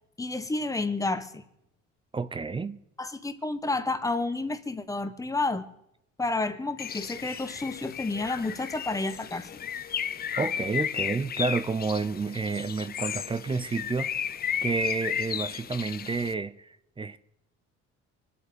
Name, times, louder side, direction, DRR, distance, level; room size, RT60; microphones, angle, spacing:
voice 1, 0.2-1.4 3.0-5.7 6.2-9.6, left 2 dB, 10° left, 1.2 m, -30 dB
voice 2, 2.1-2.8 10.4-14.1 14.6-17.2, right 4 dB, 15° right, 0.6 m, -30 dB
Bird, 6.8-16.3, left 9 dB, 30° left, 0.6 m, -34 dB
25.0 x 8.4 x 5.2 m
cardioid pair, 120°, 30 cm